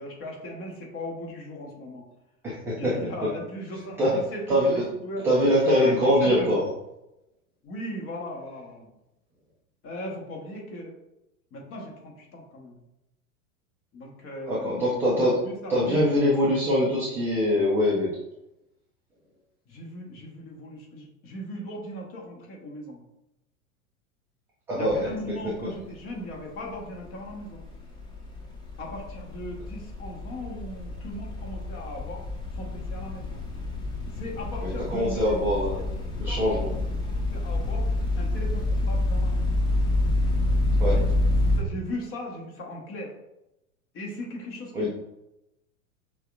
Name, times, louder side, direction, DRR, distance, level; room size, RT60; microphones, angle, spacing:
voice 1, 0.0-2.1 2.7-5.3 5.8-5.9 6.2-6.6 7.6-8.9 9.8-10.9 11.5-12.8 13.9-16.1 19.7-23.0 24.7-27.6 28.8-32.2 32.5-33.4 34.1-35.6 36.3-37.9 38.2-39.5 40.8-41.1 41.6-43.1 43.9-44.9, equal, 30° left, -1 dB, 1.2 m, -38 dB
voice 2, 2.4-2.9 4.0-4.2 4.5-4.8 5.2-6.6 14.5-15.4 15.7-18.1 24.7-25.1 34.6-35.8 36.2-36.7 40.8-41.0 44.7-44.9, equal, 5° right, -7 dB, 0.3 m, -23 dB
sound 1, 24.8-25.2 25.5-41.6, left 2 dB, 10° left, 1.0 m, -28 dB
6.2 x 2.3 x 2.5 m, 0.90 s
figure-of-eight pair, 90°, 44 cm